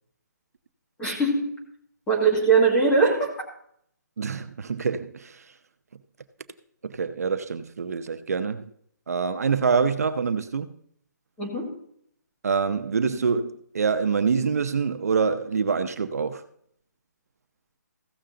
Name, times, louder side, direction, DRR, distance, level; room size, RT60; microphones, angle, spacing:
voice 1, 1.0-1.5 2.1-3.3 11.4-11.7, right 4 dB, 5° left, 1.7 m, -21 dB
voice 2, 4.2-5.5 6.8-8.7 9.1-10.7 12.4-16.4, right 5 dB, 60° right, 0.7 m, -25 dB
15.5 x 6.7 x 3.8 m
hypercardioid pair, 175°, 10 cm